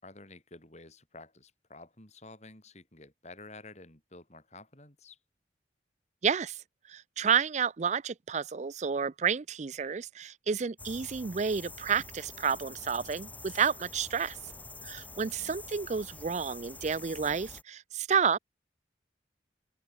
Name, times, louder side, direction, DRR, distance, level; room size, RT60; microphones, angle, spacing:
voice 1, 0.0-5.2 15.2-15.5, left 2 dB, 40° left, 4.9 m, -51 dB
voice 2, 6.2-6.6 6.9-14.4 14.8-18.4, right 6 dB, 40° right, 0.4 m, -30 dB
sound 1, 10.8-17.6, left 2 dB, 10° left, 1.4 m, -47 dB
open air
head